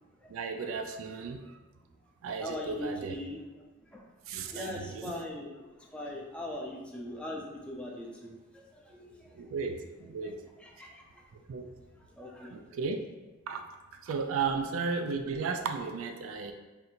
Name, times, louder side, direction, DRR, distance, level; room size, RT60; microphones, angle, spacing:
voice 1, 0.3-1.4 2.2-3.2 4.3-5.1 9.3-10.4 11.5-11.7 12.5-13.0 13.5-13.6 14.0-16.5, right 5 dB, 85° right, 6 dB, 0.3 m, -34 dB
voice 2, 2.4-3.4 3.9-4.0 4.5-5.7 5.9-9.3 10.2-10.3 10.6-11.0 12.2-12.6, left 1 dB, 5° left, -2 dB, 0.5 m, -40 dB
2.7 x 2.5 x 4.2 m, 1.2 s
head